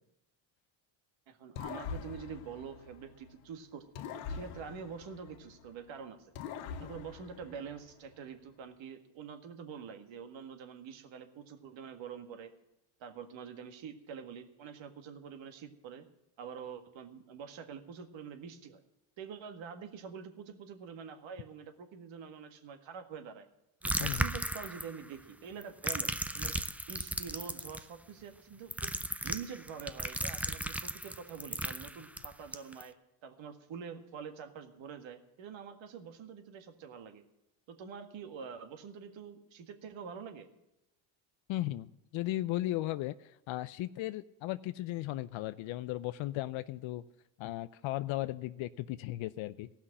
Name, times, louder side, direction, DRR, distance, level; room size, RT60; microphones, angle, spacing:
voice 1, 1.3-3.9 4.3-6.3 6.8-12.5 13.0-16.1 16.4-18.8 19.2-23.5 23.8-26.5 26.9-28.9 29.2-33.0 33.2-37.2 37.7-40.5, right 6 dB, 65° right, 7 dB, 1.9 m, -46 dB
sound 1, 1.6-3.4 4.0-5.8 6.3-8.1, left 6 dB, 90° left, 1.1 m, -44 dB
sound 2, 23.8-25.1 25.6-27.8 28.7-32.8, right 1 dB, 5° right, 0.4 m, -36 dB
voice 2, 41.5-47.0 47.4-49.7, left 16 dB, 70° left, 13 dB, 0.6 m, -36 dB
15.0 x 5.8 x 9.8 m, 0.91 s
cardioid pair, 90°, 49 cm